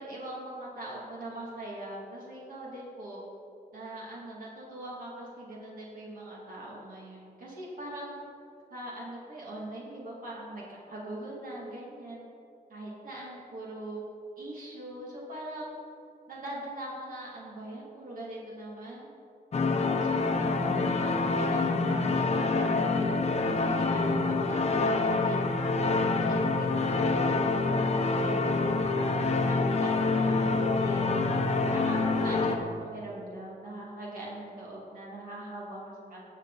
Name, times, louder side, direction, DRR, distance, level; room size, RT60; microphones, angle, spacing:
voice 1, 0.0-3.2 3.7-8.2 8.7-12.2 12.7-14.0 14.4-15.7 16.3-19.1 19.8-23.0 23.4-25.7 26.1-31.1 31.7-36.3, right 1 dB, 65° right, -5 dB, 2.6 m, -41 dB
sound 1, 19.5-32.6, left 3 dB, 45° left, 1.0 m, -26 dB
20.0 x 7.9 x 4.1 m, 2.6 s
wide cardioid pair, 170°, 16 cm